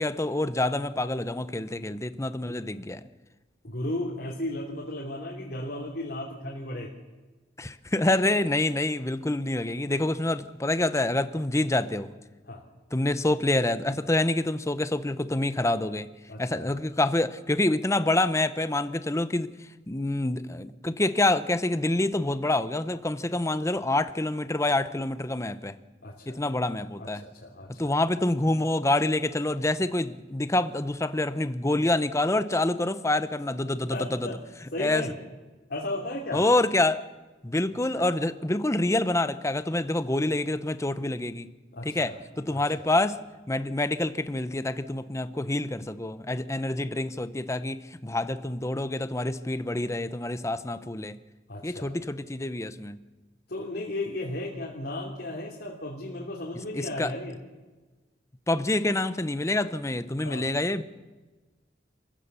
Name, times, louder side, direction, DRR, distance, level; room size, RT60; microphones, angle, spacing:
voice 1, 0.0-3.0 7.6-12.1 12.9-16.1 16.4-19.5 19.9-25.8 26.3-27.2 27.7-34.3 34.8-35.1 36.3-37.0 37.4-41.5 41.8-43.2 43.5-51.2 51.6-53.0 56.7-57.1 58.5-60.8, left 2 dB, 15° left, 12 dB, 0.8 m, -27 dB
voice 2, 3.6-6.9 12.5-12.6 16.3-16.7 26.0-26.4 27.0-28.0 33.9-34.4 34.7-35.1 35.7-36.4 37.9-38.2 41.7-42.2 42.5-42.9 51.5-51.9 53.5-57.4 60.2-60.5, left 1 dB, 65° left, -4 dB, 3.2 m, -35 dB
28.0 x 15.5 x 6.9 m, 1.2 s
head